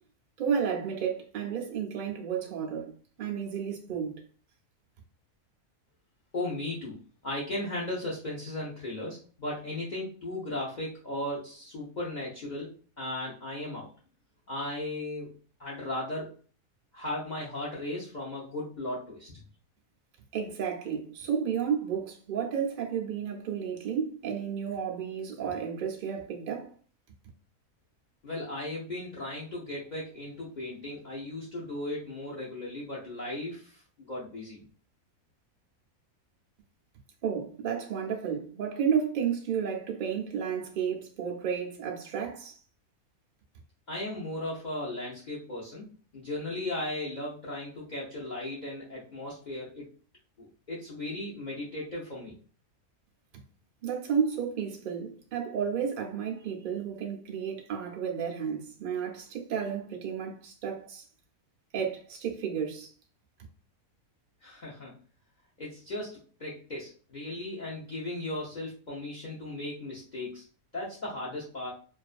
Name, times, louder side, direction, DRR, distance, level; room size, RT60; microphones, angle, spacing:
voice 1, 0.4-2.9 3.2-4.2 20.3-26.7 37.2-42.5 53.8-61.0 61.7-62.9, right 7 dB, 85° right, 0.4 m, -32 dB
voice 2, 6.3-7.0 7.2-12.7 13.0-13.9 14.5-15.3 15.6-16.3 16.9-19.4 28.2-34.6 43.9-45.8 46.1-49.9 50.4-52.3 64.4-64.9 65.6-70.4 70.7-71.7, left 1 dB, 55° left, 0.5 m, -36 dB
2.5 x 2.3 x 2.4 m
omnidirectional pair, 1.6 m